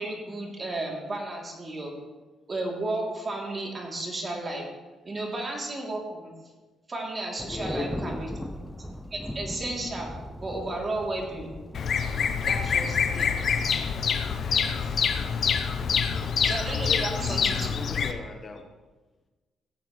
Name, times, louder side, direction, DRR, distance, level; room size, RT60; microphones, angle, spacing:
voice 1, 0.0-1.9 2.5-4.6 5.0-6.3 6.9-8.3 9.1-10.1 10.4-11.5 12.4-13.4 16.4-17.7, right 2 dB, 30° right, -2 dB, 3.1 m, -33 dB
Thunder, 7.4-12.7, equal, ahead, 0.7 m, -38 dB
voice 2, 7.5-8.4 15.9-16.3 16.8-18.7, left 3 dB, 40° left, 4 dB, 1.3 m, -38 dB
Bird vocalization bird call bird song, 11.7-18.1, left 6 dB, 55° left, 0.8 m, -26 dB
16.5 x 8.9 x 3.3 m, 1.2 s
cardioid pair, 90°, 0 cm